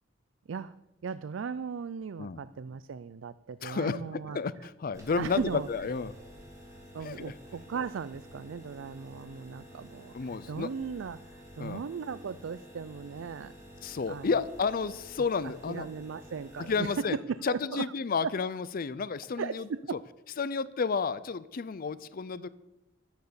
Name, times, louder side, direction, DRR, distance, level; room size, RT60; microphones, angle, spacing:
voice 1, 1.0-4.4 5.2-5.7 6.9-13.5 14.1-14.3 15.7-16.9 17.3-17.8 19.4-20.0, right 6 dB, 80° right, 15 dB, 0.4 m, -37 dB
voice 2, 3.6-6.1 7.0-7.3 10.1-10.7 11.6-11.8 13.8-15.9 16.6-17.2 17.4-20.0 20.4-22.5, left 5 dB, 50° left, 16 dB, 0.5 m, -31 dB
sound 1, 4.9-16.9, equal, 15° right, 4.0 m, -50 dB
12.0 x 10.5 x 7.0 m, 0.95 s
head